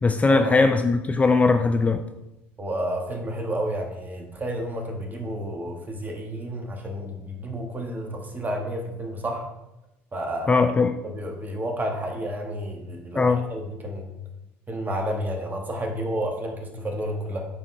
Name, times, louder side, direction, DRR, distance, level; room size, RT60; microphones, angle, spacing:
voice 1, 0.0-2.0 10.5-10.9 13.2-13.4, left 4 dB, 20° left, 7 dB, 0.5 m, -20 dB
voice 2, 2.6-9.5 10.1-10.7 11.0-14.1 14.7-17.5, right 1 dB, 25° right, 2 dB, 1.7 m, -30 dB
9.6 x 4.4 x 3.4 m, 0.93 s
hypercardioid pair, 70°, 7 cm